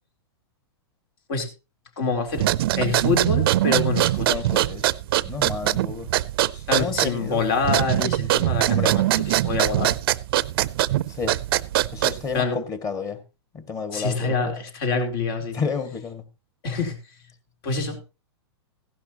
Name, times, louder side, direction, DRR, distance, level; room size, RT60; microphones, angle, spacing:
voice 1, 2.0-2.5 2.7-4.4 6.7-10.0 12.3-12.6 13.9-15.6 16.6-17.0 17.6-18.0, left 4 dB, 60° left, 5 dB, 4.1 m, -26 dB
sound 1, 2.3-12.4, right 14 dB, 60° right, 0.6 m, -22 dB
voice 2, 4.3-4.9 5.2-6.1 6.5-7.4 8.7-9.0 11.1-11.4 11.9-13.2 13.5-14.5 15.5-16.2, left 5 dB, 25° left, 9 dB, 2.1 m, -31 dB
15.5 x 12.0 x 2.9 m, 0.28 s
hypercardioid pair, 125°, 14 cm